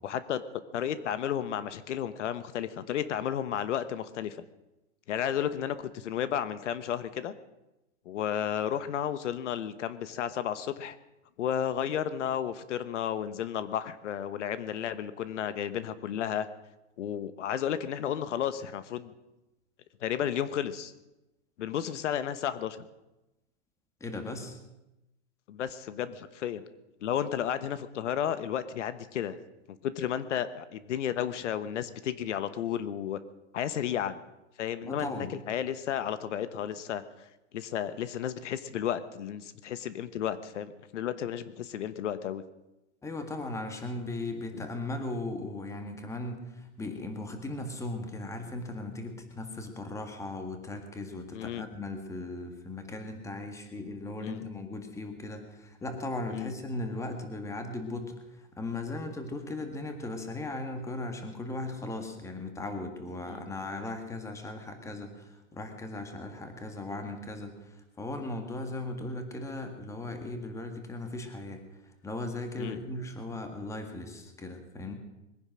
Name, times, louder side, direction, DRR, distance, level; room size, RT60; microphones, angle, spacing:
voice 1, 0.0-0.4 0.7-4.4 5.1-7.3 8.0-11.0 11.4-16.5 17.0-19.1 20.0-20.9 21.6-22.8 25.5-26.6 27.0-29.4 29.7-33.2 33.5-34.2 34.6-37.3 37.5-42.4 44.6-44.7 51.3-51.7 54.2-54.4 56.3-56.5 63.3-63.4 72.6-72.8, left 9 dB, 80° left, 13 dB, 1.2 m, -33 dB
voice 2, 24.0-24.6 34.8-35.3 43.0-74.9, left 2 dB, 10° left, 6 dB, 1.8 m, -37 dB
21.5 x 10.0 x 6.3 m, 0.96 s
hypercardioid pair, 150°, 36 cm